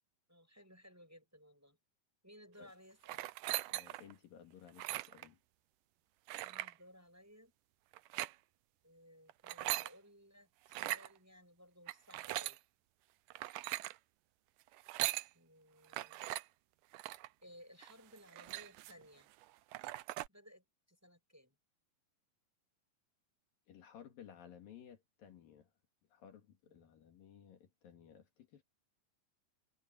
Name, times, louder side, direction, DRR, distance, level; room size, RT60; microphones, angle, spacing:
voice 1, 0.3-1.8 2.2-3.2 6.4-7.5 8.8-12.6 15.3-16.3 17.4-19.3 20.3-21.6 26.7-26.9, equal, 5° right, 5.8 m, -60 dB
sound 1, 3.0-4.1 4.7-5.3 6.3-6.7 7.9-8.3 9.3-9.9 10.7-11.1 11.9-12.6 13.3-14.0 14.7-15.3 15.9-16.4 16.9-17.3 17.8-17.9 18.2-19.0 19.4-19.5 19.7-20.3, right 17 dB, 75° right, 2.1 m, -40 dB
voice 2, 3.7-5.4 23.7-25.7 26.1-28.6, left 9 dB, 75° left, 4.0 m, -57 dB
omnidirectional pair, 4.1 m